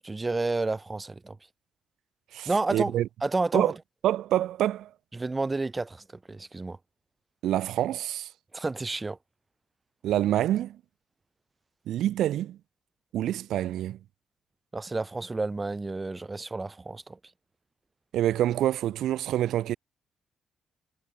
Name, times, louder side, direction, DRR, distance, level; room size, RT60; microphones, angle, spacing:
voice 1, 0.0-1.4 2.5-2.9 3.2-3.7 5.1-6.8 8.5-9.2 14.7-17.2, right 3 dB, 25° right, 3.6 m, -30 dB
voice 2, 2.3-3.1 3.5-3.7 4.0-4.9 7.4-8.3 10.0-10.8 11.9-12.6 13.1-14.0 18.1-19.8, right 12 dB, 75° right, 0.4 m, -26 dB
supercardioid pair, 55°, 0 cm